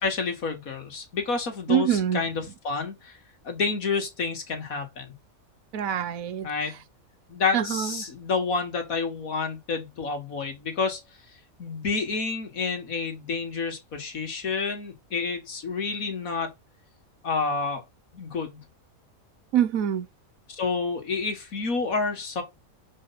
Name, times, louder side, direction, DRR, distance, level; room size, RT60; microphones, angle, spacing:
voice 1, 0.0-3.1 3.4-5.1 6.4-6.8 7.3-11.0 11.6-16.5 17.2-17.8 18.1-18.6 20.6-22.4, left 4 dB, 75° left, 2.3 m, -29 dB
voice 2, 1.7-2.2 5.7-6.5 7.5-8.1 19.5-20.1, right 10 dB, 75° right, 1.2 m, -25 dB
6.9 x 5.0 x 4.2 m
omnidirectional pair, 1.5 m